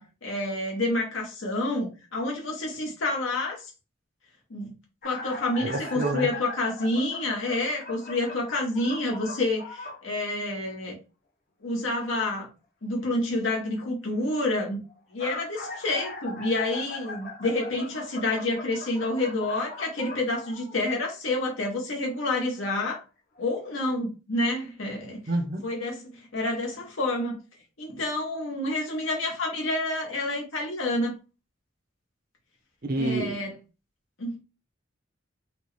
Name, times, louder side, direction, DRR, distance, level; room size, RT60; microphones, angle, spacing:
voice 1, 0.0-3.7 4.5-4.7 5.0-10.9 11.6-12.5 12.8-14.8 15.1-23.0 23.4-25.2 25.6-27.4 27.8-31.2 33.0-33.5 34.2-34.4, left 2 dB, 80° left, 0.9 m, -28 dB
sound 1, 5.0-10.1 14.9-21.1 22.2-22.3 23.4-23.5 23.8-23.9, left 3 dB, 45° left, 0.7 m, -40 dB
voice 2, 5.6-6.3 25.3-25.7 32.8-33.4, right 2 dB, 45° right, 0.6 m, -28 dB
4.1 x 2.2 x 3.1 m
head